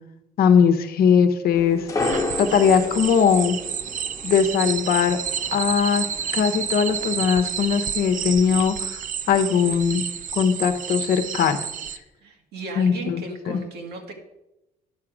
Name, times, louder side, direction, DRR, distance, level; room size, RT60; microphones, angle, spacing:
voice 1, 0.4-1.9 2.4-3.6 4.2-5.2 5.5-6.0 6.3-9.0 9.3-10.0 10.3-11.6 12.8-13.6, left 7 dB, 65° left, 7 dB, 1.0 m, -20 dB
sound 1, 1.5-7.3, left 2 dB, 20° left, 1.1 m, -33 dB
sound 2, 2.0-12.0, right 8 dB, 50° right, 0.6 m, -30 dB
voice 2, 12.2-14.1, right 3 dB, 75° right, 3 dB, 1.9 m, -36 dB
10.5 x 4.8 x 6.3 m, 0.94 s
cardioid pair, 110°, 17 cm